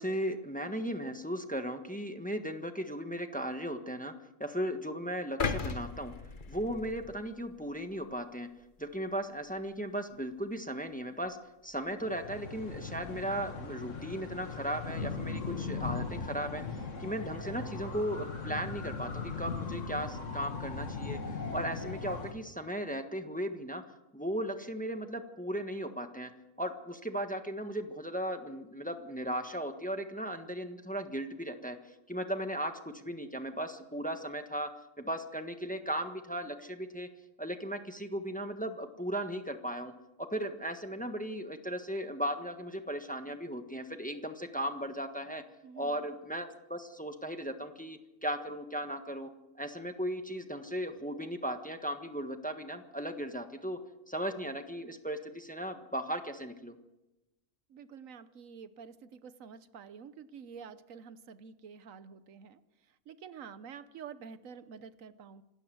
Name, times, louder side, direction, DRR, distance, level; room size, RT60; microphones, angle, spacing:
voice 1, 0.0-4.1 4.4-6.1 6.5-8.5 8.8-11.4 11.6-16.6 17.0-23.8 24.1-26.3 26.6-31.8 32.1-34.7 35.0-37.1 37.4-39.9 40.2-45.4 45.7-53.8 54.1-56.8, equal, 5° left, 6 dB, 1.4 m, -36 dB
sound 1, 5.4-7.6 8.0-8.2, left 5 dB, 40° left, 1.2 m, -36 dB
sound 2, 12.0-22.3, left 4 dB, 70° left, 2.1 m, -39 dB
voice 2, 45.6-46.0 57.7-62.6 63.1-65.4, right 6 dB, 80° right, 13 dB, 1.3 m, -48 dB
26.5 x 12.5 x 7.8 m, 0.99 s
omnidirectional pair, 1.4 m